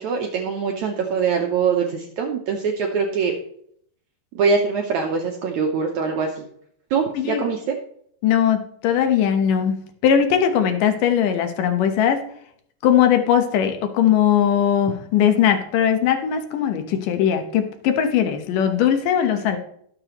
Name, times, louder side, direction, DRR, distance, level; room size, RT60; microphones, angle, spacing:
voice 1, 0.0-3.3 4.3-6.4 6.9-7.8, right 5 dB, 80° right, 2 dB, 1.7 m, -23 dB
voice 2, 8.2-9.8 10.0-12.2 12.8-19.6, left 9 dB, 70° left, 7 dB, 2.3 m, -19 dB
18.0 x 6.8 x 3.0 m, 0.66 s
omnidirectional pair, 4.7 m